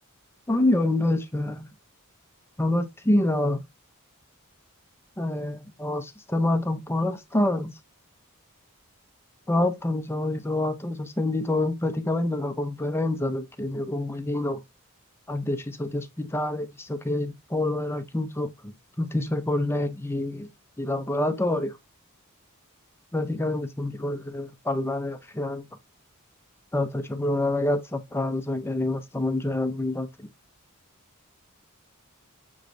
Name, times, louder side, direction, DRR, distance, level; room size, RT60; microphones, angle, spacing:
voice 1, 0.5-1.7 2.6-3.6 5.2-7.7 9.5-14.6 15.3-20.5 20.8-21.8 23.1-25.7 26.7-30.3, left 1 dB, 10° left, 0.6 m, -27 dB
6.7 x 3.1 x 2.5 m
head